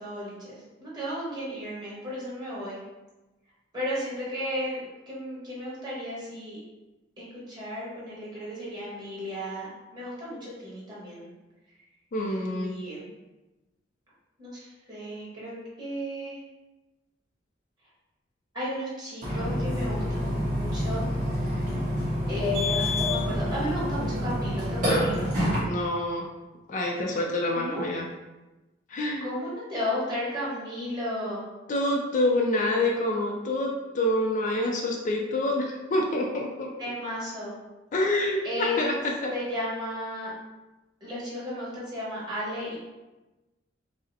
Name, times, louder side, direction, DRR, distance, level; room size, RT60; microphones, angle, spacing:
voice 1, 0.0-2.8 3.7-6.6 7.2-11.3 12.3-13.0 14.4-16.4 18.5-21.1 21.3-21.8 22.3-25.3 27.5-27.8 29.2-31.4 36.8-37.5 38.4-38.8 39.3-40.3 41.0-42.8, equal, 25° right, -8 dB, 1.4 m, -34 dB
voice 2, 12.1-12.8 25.6-26.3 26.7-28.0 28.9-29.2 31.7-36.7 37.9-39.3, left 1 dB, 40° left, 0 dB, 0.4 m, -27 dB
Burping eructation, 19.2-25.6, left 1 dB, 45° right, 1.2 m, -27 dB
4.9 x 2.0 x 2.7 m, 1.1 s
head